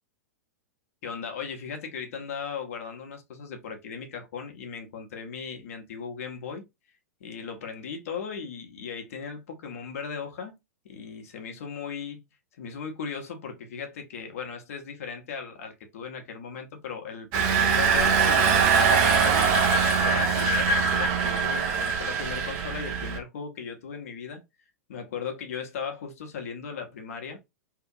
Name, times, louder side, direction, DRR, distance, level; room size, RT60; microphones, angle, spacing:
voice 1, 1.0-6.7 7.2-10.5 10.8-12.2 12.6-19.4 19.9-24.4 24.9-27.4, left 6 dB, 60° left, 0.8 m, -37 dB
Engine, 17.3-23.2, right 5 dB, 45° right, 0.8 m, -22 dB
2.8 x 2.5 x 2.4 m
figure-of-eight pair, 100°, 9 cm